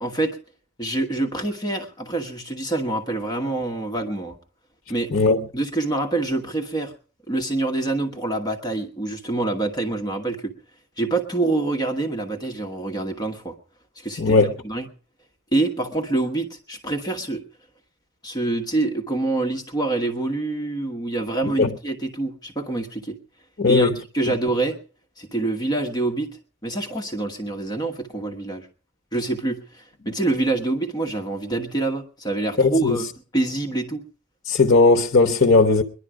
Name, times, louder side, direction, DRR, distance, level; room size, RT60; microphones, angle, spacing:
voice 1, 0.0-0.4 0.8-4.4 4.9-5.1 5.5-6.9 7.3-10.5 11.0-13.6 14.0-14.4 14.6-14.9 15.5-17.4 18.2-23.2 23.7-24.8 25.2-26.3 26.6-28.7 29.1-33.0 33.3-34.0, right 2 dB, 20° left, 1.2 m, -26 dB
voice 2, 14.2-14.5 21.6-21.7 23.6-23.9 32.6-33.0 34.5-35.8, left 3 dB, 55° left, 1.0 m, -17 dB
21.0 x 11.5 x 4.8 m
head